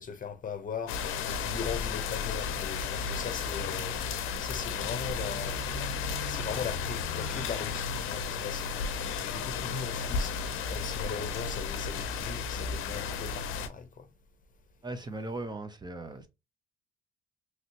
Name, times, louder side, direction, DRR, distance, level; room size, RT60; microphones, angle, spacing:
voice 1, 0.0-8.7 9.2-14.1, left 6 dB, 40° left, 0.7 m, -39 dB
sound 1, 0.9-13.7, left 5 dB, 90° left, 0.5 m, -33 dB
voice 2, 14.8-16.3, right 2 dB, 20° right, 0.6 m, -38 dB
3.1 x 2.8 x 2.7 m
cardioid pair, 90°, 20 cm